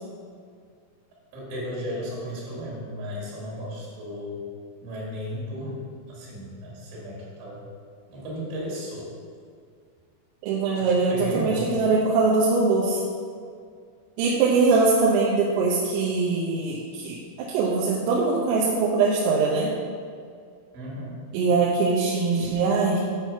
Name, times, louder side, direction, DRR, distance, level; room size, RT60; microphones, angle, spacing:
voice 1, 1.3-4.4 4.8-5.8 6.1-7.6 8.1-9.1 10.8-11.8 20.7-21.2, equal, 70° right, -6 dB, 4.4 m, -34 dB
voice 2, 10.4-13.0 14.2-17.2 17.5-19.7 21.3-23.0, right 4 dB, 85° right, -4 dB, 3.5 m, -22 dB
9.6 x 4.5 x 5.7 m, 2.1 s
omnidirectional pair, 5.8 m